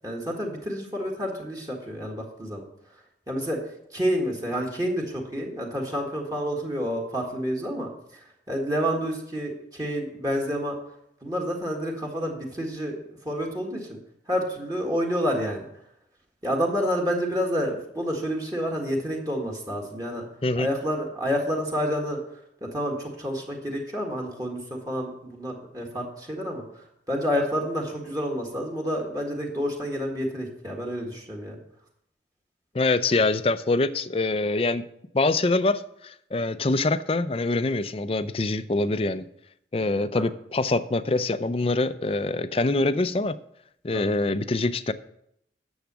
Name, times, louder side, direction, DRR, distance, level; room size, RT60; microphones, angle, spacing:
voice 1, 0.0-2.6 3.3-3.6 3.9-10.8 11.2-13.0 13.2-14.0 14.3-15.7 16.4-20.2 20.6-22.2 22.6-31.6 40.1-40.2 43.9-44.1, equal, 20° right, -1 dB, 1.6 m, -29 dB
voice 2, 32.7-34.8 35.1-39.3 39.7-43.4 43.8-44.9, left 2 dB, 30° left, 13 dB, 0.5 m, -24 dB
10.5 x 7.2 x 6.1 m, 0.74 s
head